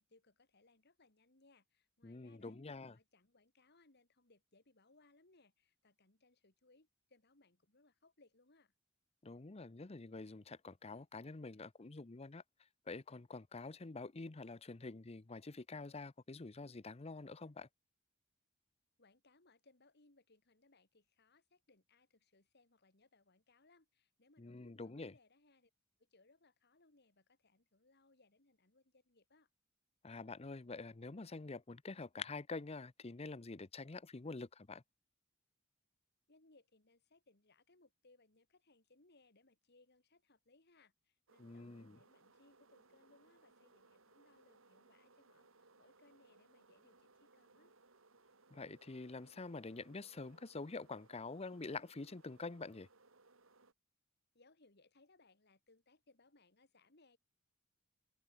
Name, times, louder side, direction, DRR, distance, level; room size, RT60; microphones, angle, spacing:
voice 1, 0.0-8.7 19.0-25.7 26.0-29.5 36.3-47.7 54.3-57.2, left 2 dB, 55° left, 2.9 m, -70 dB
voice 2, 2.0-3.0 9.2-12.4 12.9-17.7 24.4-25.1 30.0-34.8 41.4-42.0 48.5-52.9, left 3 dB, 30° left, 0.7 m, -47 dB
sound 1, 41.3-53.7, right 3 dB, 90° right, 3.0 m, -67 dB
head